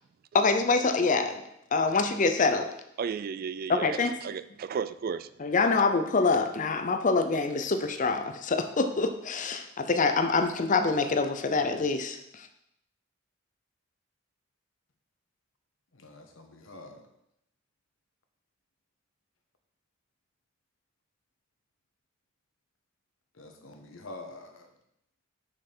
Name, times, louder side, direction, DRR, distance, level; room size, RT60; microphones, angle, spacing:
voice 1, 0.3-1.4 1.7-2.7 3.7-4.2 5.4-12.5, left 4 dB, 40° left, 7 dB, 0.6 m, -25 dB
voice 2, 3.0-5.3, right 6 dB, 45° right, 14 dB, 0.3 m, -34 dB
voice 3, 15.9-17.0 23.3-24.7, left 2 dB, 75° left, 4 dB, 1.2 m, -46 dB
6.4 x 5.5 x 5.5 m, 0.78 s
head